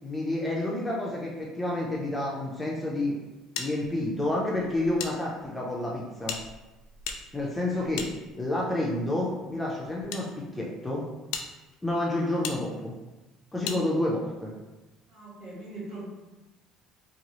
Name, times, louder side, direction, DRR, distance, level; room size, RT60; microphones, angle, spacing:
voice 1, 0.0-3.1 3.6-6.4 7.3-8.1 8.4-11.0 11.8-13.0 13.5-14.5, left 1 dB, 5° left, -4 dB, 0.3 m, -29 dB
sound 1, 3.6-5.1 5.4-5.5 6.2-8.7 9.5-10.2 10.8-10.9 11.3-11.5 12.4-12.6 13.6-13.8, left 6 dB, 90° left, 0.3 m, -37 dB
voice 2, 12.0-12.4 15.1-16.0, right 2 dB, 45° right, -6 dB, 1.1 m, -42 dB
2.9 x 2.3 x 2.8 m, 1.1 s
cardioid pair, 160°, 0 cm